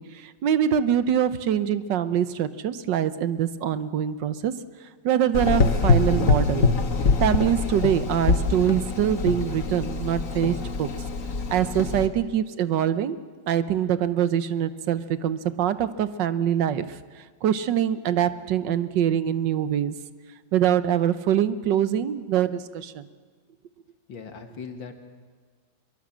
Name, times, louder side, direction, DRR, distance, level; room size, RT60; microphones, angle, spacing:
voice 1, 0.0-4.5 5.0-6.7 7.2-10.9 11.5-13.2 13.5-17.0 17.4-19.9 20.5-23.1, right 9 dB, 75° right, 13 dB, 1.5 m, -24 dB
Gurgling / Engine, 5.3-12.1, left 4 dB, 45° left, 1.6 m, -24 dB
voice 2, 24.1-24.9, left 5 dB, 85° left, 6 dB, 2.6 m, -39 dB
25.0 x 23.0 x 7.5 m, 1.5 s
omnidirectional pair, 2.0 m